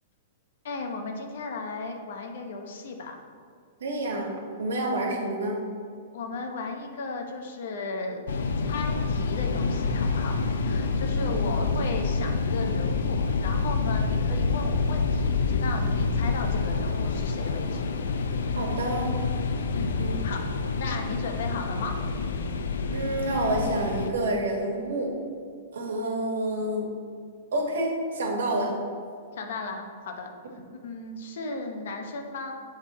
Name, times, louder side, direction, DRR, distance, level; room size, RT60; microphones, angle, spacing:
voice 1, 0.6-3.1 6.1-8.2 8.6-10.4 10.6-17.8 19.7-20.0 20.2-20.4 20.8-22.0 29.4-30.3 30.8-32.6, left 3 dB, 55° left, 3 dB, 0.8 m, -35 dB
voice 2, 3.8-4.3 4.6-5.6 11.3-11.4 18.5-19.1 20.0-20.1 22.9-25.1 25.7-26.9 27.5-28.7, right 1 dB, 80° right, 0 dB, 1.5 m, -28 dB
sound 1, 8.3-24.1, left 4 dB, 85° left, 0.5 m, -27 dB
8.0 x 3.7 x 4.2 m, 2.2 s
supercardioid pair, 180°, 0 cm